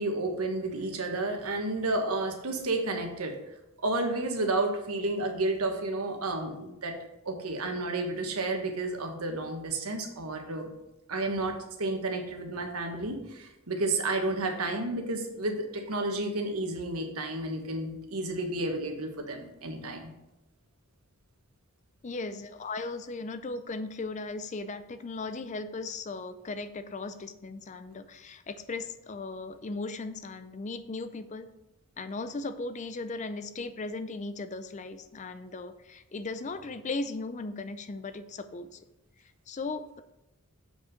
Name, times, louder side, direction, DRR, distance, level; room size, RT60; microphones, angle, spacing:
voice 1, 0.0-3.4 3.8-6.9 7.2-10.7 11.1-20.1, right 2 dB, 85° right, 4 dB, 1.3 m, -31 dB
voice 2, 22.0-31.5 32.0-38.8 39.2-40.0, left 3 dB, 35° left, 11 dB, 0.4 m, -37 dB
7.3 x 5.2 x 5.1 m, 0.92 s
head